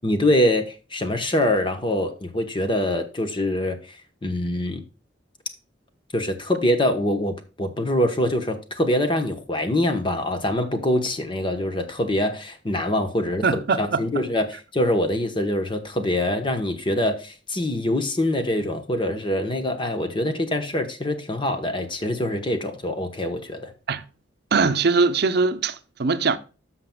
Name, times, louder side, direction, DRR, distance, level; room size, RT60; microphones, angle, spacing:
voice 1, 0.0-3.8 4.2-4.8 6.1-23.7, left 1 dB, 25° left, 1.1 m, -24 dB
voice 2, 13.4-14.2 23.9-24.0 24.5-26.4, right 4 dB, 60° right, 0.6 m, -22 dB
13.5 x 5.9 x 2.3 m
head